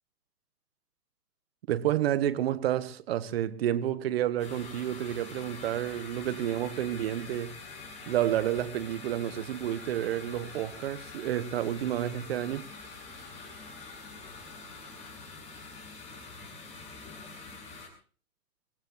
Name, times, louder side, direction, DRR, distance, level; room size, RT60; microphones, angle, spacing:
voice 1, 1.7-7.6 8.1-12.7, right 11 dB, 40° right, 1.3 m, -30 dB
sound 1, 4.4-17.9, left 4 dB, 15° left, 7.4 m, -45 dB
Wind instrument woodwind instrument, 10.1-15.3, right 2 dB, 20° right, 7.4 m, -63 dB
25.0 x 18.5 x 3.1 m
hypercardioid pair, 145°, 47 cm